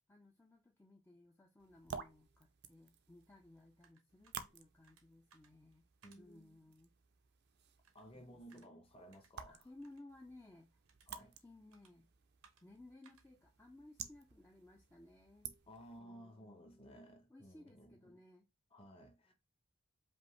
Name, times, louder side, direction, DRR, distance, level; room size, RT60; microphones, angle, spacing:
voice 1, 0.1-5.8 6.1-6.9 8.1-8.8 9.1-10.8 11.1-12.1 12.6-15.5 16.0-18.5 19.2-19.3, left 2 dB, 10° left, 0.4 m, -60 dB
sound 1, 1.6-16.0, right 7 dB, 50° right, 0.5 m, -54 dB
sound 2, 3.2-14.9, right 6 dB, 90° right, 1.0 m, -73 dB
voice 2, 6.0-6.6 7.9-9.6 11.1-11.3 15.7-18.1 18.7-19.3, equal, 25° left, 0.9 m, -57 dB
5.2 x 2.6 x 3.1 m
head